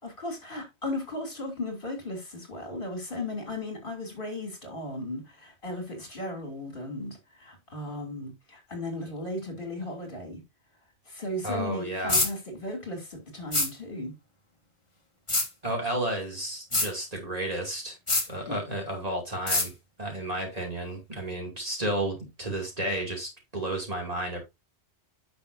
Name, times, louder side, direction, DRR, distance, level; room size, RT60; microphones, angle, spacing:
voice 1, 0.0-10.4 11.1-14.1 18.5-18.6, left 1 dB, 50° left, 3.1 m, -36 dB
voice 2, 11.4-12.2 15.6-18.0 18.3-19.7 20.0-24.4, right 1 dB, 35° right, 2.6 m, -32 dB
sound 1, 12.1-12.3 13.5-13.7 15.3-15.5 16.7-16.9 18.1-18.3 19.5-19.7, left 2 dB, 25° left, 1.7 m, -24 dB
10.0 x 6.1 x 2.6 m
omnidirectional pair, 1.2 m